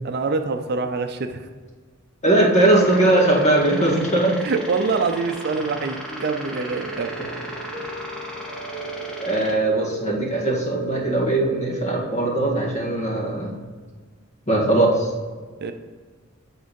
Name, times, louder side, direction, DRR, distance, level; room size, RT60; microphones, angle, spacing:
voice 1, 0.0-1.4 4.4-7.1 15.6-15.7, right 4 dB, 50° right, 7 dB, 0.5 m, -25 dB
voice 2, 2.2-4.4 9.2-13.5 14.5-15.1, right 2 dB, 35° left, -3 dB, 1.9 m, -20 dB
sound 1, 2.6-9.5, equal, 5° left, 1.2 m, -36 dB
sound 2, 6.1-12.2, right 4 dB, 15° right, 1.3 m, -36 dB
8.8 x 3.7 x 5.3 m, 1.5 s
head